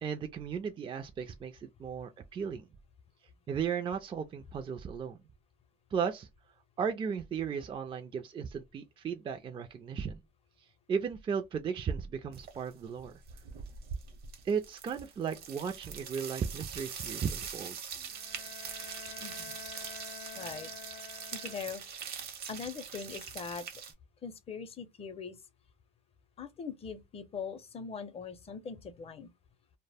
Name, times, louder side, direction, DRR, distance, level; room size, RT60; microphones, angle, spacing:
voice 1, 0.0-2.7 3.5-5.2 5.9-6.3 6.8-10.2 10.9-13.2 14.4-17.7, right 6 dB, 30° right, 0.3 m, -35 dB
sound 1, 12.3-12.7 13.0-23.9, right 7 dB, 65° right, 0.8 m, -43 dB
Bowed string instrument, 18.1-22.0, left 9 dB, 85° left, 0.5 m, -49 dB
voice 2, 19.2-19.6 20.3-20.7 21.3-22.0 22.5-23.7 24.2-25.4 26.4-29.3, left 6 dB, 35° left, 0.5 m, -41 dB
2.1 x 2.0 x 3.3 m
cardioid pair, 110°, 17 cm